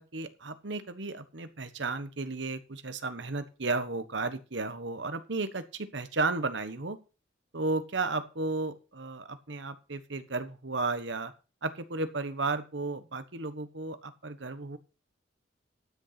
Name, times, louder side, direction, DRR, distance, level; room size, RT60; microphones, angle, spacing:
voice 1, 0.0-7.0 7.5-11.3 11.6-14.8, right 3 dB, 65° right, 12 dB, 1.2 m, -34 dB
12.5 x 6.7 x 5.9 m, 0.33 s
head